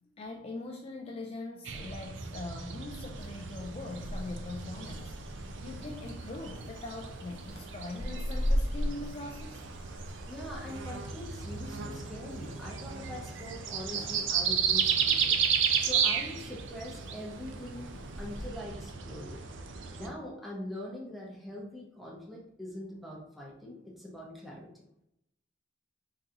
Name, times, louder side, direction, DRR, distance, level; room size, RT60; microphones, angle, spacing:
voice 1, 0.1-9.7, left 2 dB, 30° left, 2 dB, 0.3 m, -42 dB
sound 1, 1.7-20.1, right 7 dB, 70° right, 0.5 m, -34 dB
sound 2, 3.1-18.4, equal, 60° left, 0.8 m, -40 dB
voice 2, 10.3-15.4 15.8-19.4 19.9-24.9, left 1 dB, ahead, -4 dB, 0.9 m, -43 dB
3.8 x 3.8 x 2.9 m, 0.80 s
head